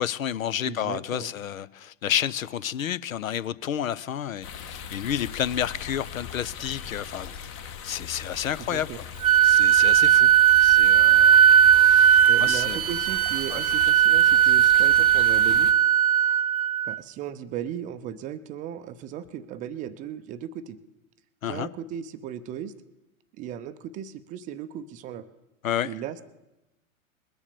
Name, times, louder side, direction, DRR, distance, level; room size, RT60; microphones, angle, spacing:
voice 1, 0.0-7.4 7.8-9.1 9.4-10.3 10.6-11.4 11.7-12.8 13.5-13.6 21.4-21.7 25.6-25.9, left 10 dB, 75° left, 0.7 m, -30 dB
voice 2, 0.6-1.3 8.7-9.0 12.3-15.7 16.9-20.8 21.4-22.7 23.4-25.3 25.8-26.2, right 9 dB, 20° right, 0.5 m, -36 dB
sound 1, 4.4-15.7, left 7 dB, 30° left, 1.4 m, -40 dB
Wind instrument woodwind instrument, 9.2-17.0, right 10 dB, 85° right, 0.6 m, -18 dB
21.0 x 7.1 x 6.8 m
figure-of-eight pair, 110°, 41 cm